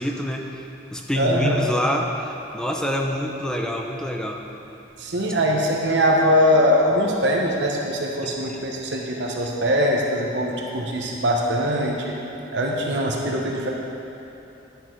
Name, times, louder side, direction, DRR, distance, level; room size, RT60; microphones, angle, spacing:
voice 1, 0.0-4.4 8.2-8.6, equal, 5° left, 1 dB, 0.6 m, -26 dB
voice 2, 1.2-1.7 5.0-12.1 12.5-13.7, equal, 65° right, -1 dB, 0.9 m, -22 dB
10.5 x 6.9 x 4.5 m, 2.9 s
head